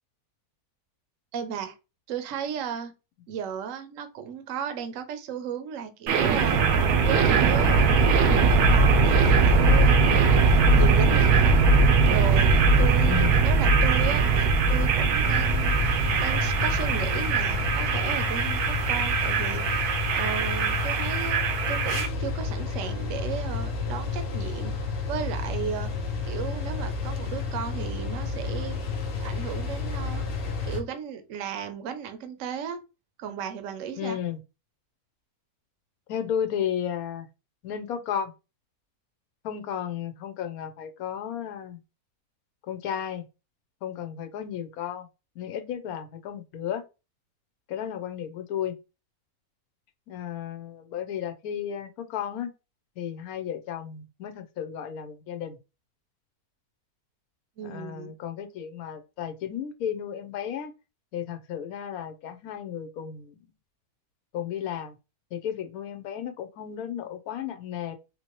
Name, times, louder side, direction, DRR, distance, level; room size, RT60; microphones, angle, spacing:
voice 1, 1.3-1.7 2.1-2.9 3.3-6.6 7.0-11.6 12.1-21.4 21.7-24.8 25.1-25.9 26.2-28.8 29.2-30.2 30.6-32.8 33.2-34.2 57.6-58.1, right 8 dB, 65° right, 1.0 m, -35 dB
sound 1, 6.1-22.1, right 4 dB, 80° right, 1.2 m, -21 dB
voice 2, 13.0-13.4 34.0-34.4 36.1-37.3 37.6-38.3 39.4-41.8 42.7-43.2 43.8-45.1 45.4-46.8 47.7-48.7 50.1-52.5 53.0-55.6 57.6-60.7 61.1-63.4 64.3-64.9 65.3-67.9, left 9 dB, 75° left, 1.1 m, -33 dB
sound 2, 15.2-30.8, left 4 dB, 55° left, 0.7 m, -31 dB
3.8 x 2.8 x 2.9 m
omnidirectional pair, 1.6 m